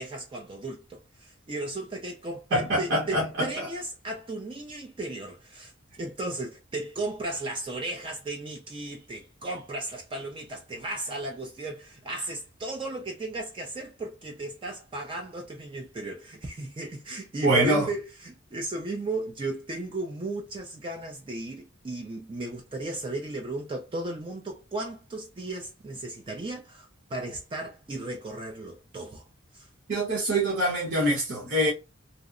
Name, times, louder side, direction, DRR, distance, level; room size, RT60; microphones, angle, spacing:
voice 1, 0.0-29.3 29.5-29.7, right 2 dB, 25° right, 0.4 m, -35 dB
voice 2, 2.5-3.7 17.4-17.9 29.9-31.7, right 1 dB, 60° right, 0.9 m, -24 dB
2.7 x 2.0 x 2.4 m
head